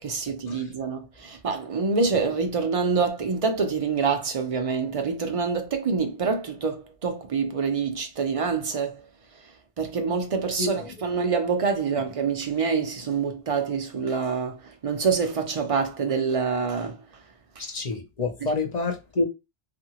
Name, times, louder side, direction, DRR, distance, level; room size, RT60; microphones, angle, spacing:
voice 1, 0.0-9.0 9.8-17.0, right 5 dB, 50° right, 0.4 m, -26 dB
voice 2, 10.6-10.9 17.7-19.2, left 3 dB, 45° left, 0.5 m, -28 dB
2.7 x 2.5 x 2.8 m
omnidirectional pair, 1.2 m